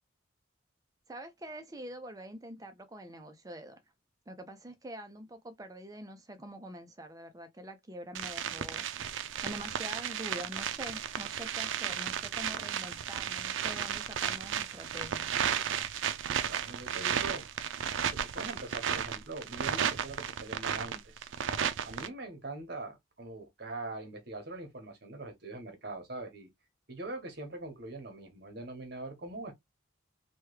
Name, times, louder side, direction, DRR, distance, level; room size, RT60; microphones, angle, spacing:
voice 1, 1.1-3.8 4.3-8.8 9.4-15.3, equal, 20° right, 0.5 m, -45 dB
sound 1, 8.1-22.1, right 8 dB, 80° right, 0.4 m, -34 dB
voice 2, 16.5-17.5 18.1-21.3 21.8-26.5 26.9-29.5, right 2 dB, 55° right, 1.0 m, -42 dB
3.0 x 2.3 x 3.1 m
head